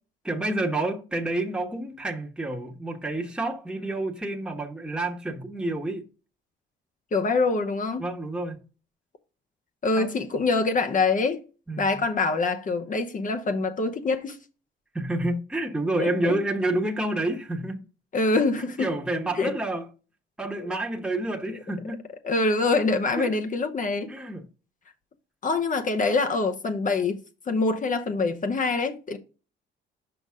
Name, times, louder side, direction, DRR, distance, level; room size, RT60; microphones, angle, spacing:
voice 1, 0.2-6.0 8.0-8.6 10.0-10.1 11.7-11.9 14.9-17.8 18.6-19.9 20.4-22.0 23.2-23.3 24.1-24.4, right 2 dB, 5° right, 1.1 m, -29 dB
voice 2, 7.1-8.0 9.8-11.4 11.8-14.4 16.0-16.3 18.1-18.9 19.3-19.5 20.6-20.8 22.2-24.1 25.4-27.2 27.5-29.2, left 3 dB, 40° left, 0.8 m, -25 dB
5.9 x 5.2 x 3.6 m
cardioid pair, 90°, 20 cm